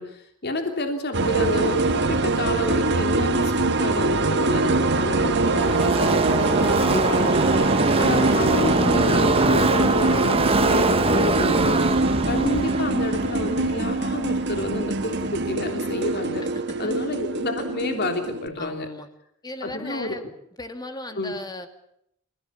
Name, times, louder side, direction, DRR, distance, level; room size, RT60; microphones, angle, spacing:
voice 1, 0.0-7.3 8.0-11.8 12.2-16.5 16.8-18.9 19.6-20.2 21.2-21.3, left 1 dB, 50° left, 5 dB, 3.2 m, -29 dB
sound 1, 1.1-18.5, right 3 dB, 55° right, 1.6 m, -24 dB
Car passing by / Race car auto racing, 4.4-14.7, right 2 dB, 25° right, 1.2 m, -23 dB
voice 2, 6.5-7.0 16.4-16.8 18.6-19.1 19.4-20.2 20.6-21.7, left 2 dB, 20° left, 7 dB, 2.5 m, -37 dB
28.0 x 16.5 x 8.5 m, 0.75 s
head